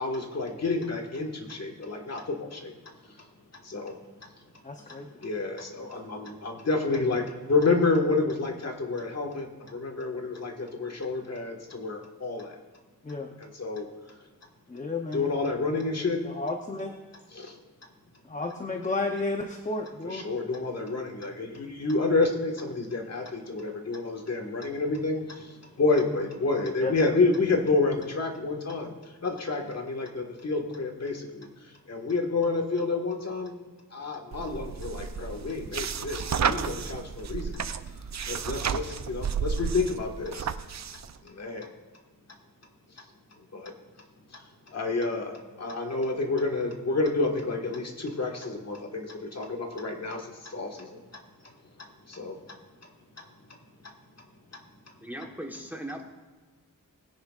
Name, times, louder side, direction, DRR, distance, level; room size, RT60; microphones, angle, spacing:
voice 1, 0.0-2.7 3.0-3.1 3.6-4.0 5.2-12.6 13.4-13.9 15.1-16.2 17.3-17.5 20.0-33.5 33.9-37.6 38.2-40.5 41.2-41.7 43.5-43.7 44.3-51.0 51.8-52.4 53.5-53.6, left 3 dB, 50° left, 2 dB, 1.6 m, -29 dB
voice 2, 4.6-5.1 6.2-6.3 13.0-13.3 14.7-15.4 16.0-16.9 18.3-20.3 26.8-26.9, left 3 dB, 25° left, 3 dB, 0.8 m, -32 dB
sound 1, 34.3-41.1, right 7 dB, 55° right, 0.5 m, -32 dB
voice 3, 55.0-56.0, right 1 dB, 5° right, 1 dB, 1.2 m, -38 dB
20.5 x 10.0 x 2.4 m, 1.4 s
wide cardioid pair, 155°, 33 cm